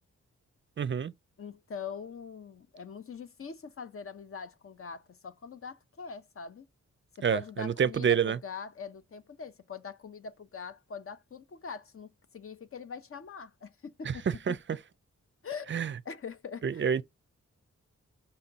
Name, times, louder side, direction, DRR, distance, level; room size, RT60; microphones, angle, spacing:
voice 1, 0.8-1.1 7.2-8.4 14.1-14.8 15.7-15.9 16.6-17.0, right 7 dB, 40° right, 0.5 m, -28 dB
voice 2, 1.4-6.7 7.2-14.6 15.4-16.9, left 5 dB, 50° left, 0.8 m, -43 dB
5.6 x 4.3 x 5.3 m
wide cardioid pair, 110°, 29 cm